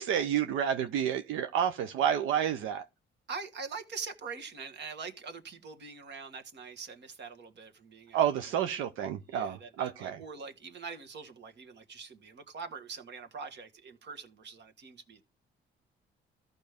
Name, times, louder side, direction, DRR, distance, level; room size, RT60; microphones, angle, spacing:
voice 1, 0.0-2.8 8.1-10.2, right 9 dB, 85° right, 0.6 m, -30 dB
voice 2, 3.3-8.6 9.3-15.2, right 5 dB, 60° right, 1.5 m, -44 dB
14.0 x 5.3 x 3.5 m
cardioid pair, 90°, 20 cm